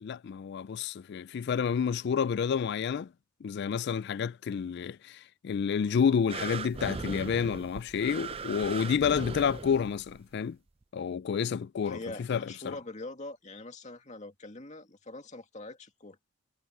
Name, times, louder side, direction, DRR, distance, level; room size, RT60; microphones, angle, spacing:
voice 1, 0.0-3.1 3.4-10.6 10.9-12.0 12.3-12.7, left 7 dB, 50° left, 0.3 m, -29 dB
sound 1, 6.3-10.2 10.8-10.9, right 4 dB, 25° right, 0.5 m, -39 dB
voice 2, 11.8-16.2, left 2 dB, 35° left, 2.3 m, -43 dB
head